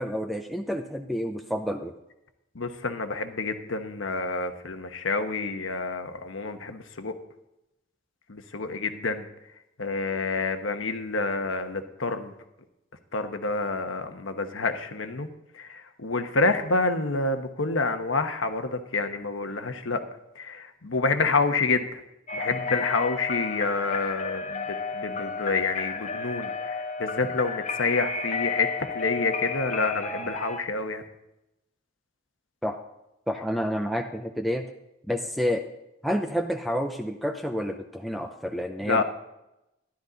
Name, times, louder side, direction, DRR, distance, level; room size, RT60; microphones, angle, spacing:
voice 1, 0.0-1.9 32.6-32.8 33.3-34.7 35.1-35.7 36.0-39.0, equal, ahead, 3 dB, 0.6 m, -29 dB
voice 2, 2.5-7.1 8.3-9.2 9.8-12.3 13.1-15.3 15.5-20.0 20.3-22.0 22.3-28.7 28.9-31.0 38.9-39.0, left 3 dB, 80° left, 7 dB, 1.1 m, -28 dB
sound 1, 22.3-30.6, left 4 dB, 35° left, 0.8 m, -32 dB
12.5 x 11.5 x 4.0 m, 0.89 s
head